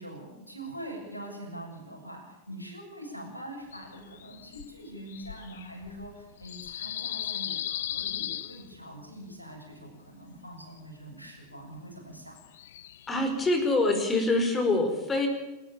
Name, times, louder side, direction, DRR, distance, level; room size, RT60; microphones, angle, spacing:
voice 1, 0.0-12.4, right 1 dB, 85° left, -1 dB, 7.2 m, -43 dB
sound 1, 3.7-4.7 5.1-9.2 12.4-13.7, left 12 dB, 60° left, 0.6 m, -37 dB
voice 2, 13.1-15.3, left 2 dB, 15° left, 6 dB, 4.9 m, -25 dB
28.0 x 13.5 x 7.0 m, 1.1 s
figure-of-eight pair, 90°, 0 cm